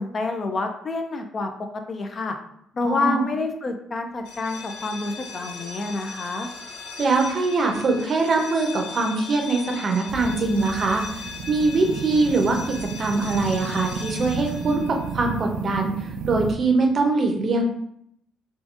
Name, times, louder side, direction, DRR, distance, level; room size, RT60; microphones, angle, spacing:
voice 1, 0.0-1.5 1.9-2.4 2.7-6.5, left 3 dB, 35° left, 5 dB, 0.4 m, -28 dB
voice 2, 2.8-3.3 7.0-12.6 13.0-16.0 16.3-17.6, right 3 dB, 40° right, 3 dB, 0.6 m, -22 dB
sound 1, 4.2-15.9, left 4 dB, 85° left, 0.7 m, -39 dB
sound 2, 10.1-16.5, right 5 dB, 85° right, 0.3 m, -33 dB
3.7 x 2.5 x 2.4 m, 0.72 s
cardioid pair, 115°, 0 cm